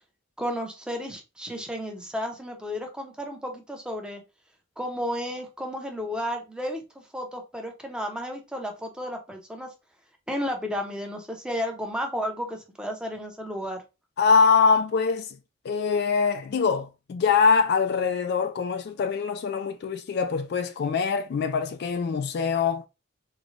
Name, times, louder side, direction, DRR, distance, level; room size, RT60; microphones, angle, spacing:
voice 1, 0.4-4.2 4.8-6.8 7.1-9.7 10.3-13.8, equal, 5° right, 0.6 m, -32 dB
voice 2, 14.2-15.4 15.6-22.9, left 5 dB, 50° left, 0.3 m, -23 dB
3.8 x 2.1 x 3.1 m
head